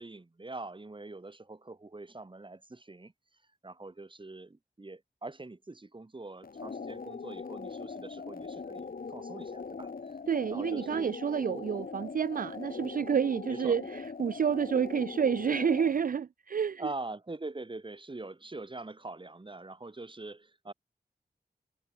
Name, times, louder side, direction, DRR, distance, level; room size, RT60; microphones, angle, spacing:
voice 1, 0.0-3.1 3.6-10.2 10.5-11.1 13.5-13.8 16.8-20.7, right 2 dB, 30° right, 1.4 m, -43 dB
sound 1, 6.4-16.0, left 4 dB, 55° left, 1.0 m, -41 dB
voice 2, 10.3-16.9, right 7 dB, 55° right, 0.4 m, -29 dB
wide cardioid pair, 90°, 17 cm